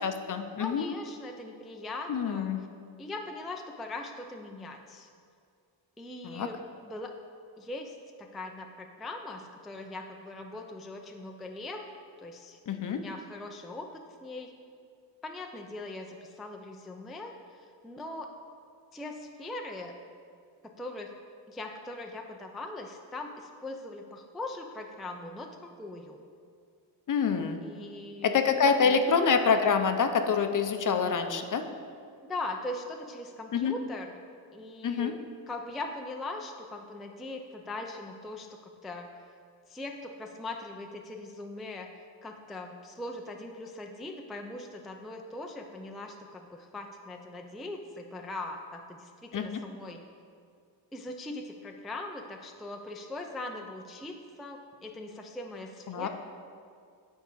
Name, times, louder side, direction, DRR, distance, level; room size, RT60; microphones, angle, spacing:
voice 1, 0.0-0.9 2.1-2.6 6.2-6.5 12.7-13.0 27.1-27.6 28.2-31.6 33.5-33.7 34.8-35.1 49.3-49.6 55.9-56.1, left 6 dB, 40° left, 7 dB, 0.6 m, -26 dB
voice 2, 0.6-2.5 3.0-5.1 6.0-7.1 7.6-11.8 12.2-12.6 12.9-14.5 15.2-18.3 18.9-19.9 20.6-21.1 21.5-26.2 27.6-29.0 32.2-34.2 34.5-35.2 35.5-39.1 39.7-41.9 42.2-50.1 50.9-56.1, left 2 dB, ahead, 2 dB, 0.3 m, -40 dB
9.2 x 4.6 x 4.6 m, 2.3 s
cardioid pair, 110°, 47 cm